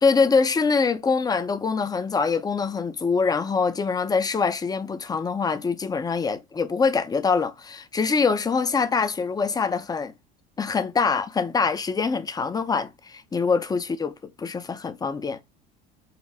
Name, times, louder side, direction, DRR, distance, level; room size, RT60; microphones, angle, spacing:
voice 1, 0.0-10.1 10.6-15.4, left 5 dB, 20° left, 0.6 m, -24 dB
4.2 x 2.6 x 3.9 m
supercardioid pair, 100°, 21 cm